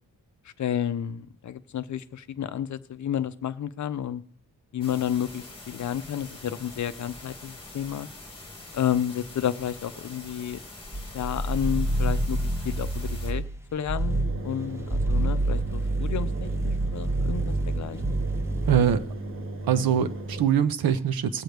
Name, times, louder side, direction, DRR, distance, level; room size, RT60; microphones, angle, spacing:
voice 1, 0.6-4.2 4.7-8.1 8.7-10.6 11.1-12.4 12.6-13.4 13.7-18.0, left 9 dB, 50° left, 12 dB, 0.6 m, -31 dB
sound 1, 4.8-13.3, left 2 dB, 15° left, 2.6 m, -44 dB
sound 2, 10.8-13.5 13.9-14.4 14.8-19.1, right 2 dB, 5° right, 0.6 m, -27 dB
Engine, 14.0-20.4, right 2 dB, 35° right, 1.2 m, -36 dB
voice 2, 18.7-19.1 19.7-21.4, right 8 dB, 70° right, 12 dB, 0.8 m, -23 dB
20.0 x 7.8 x 3.4 m, 0.66 s
wide cardioid pair, 125°, 37 cm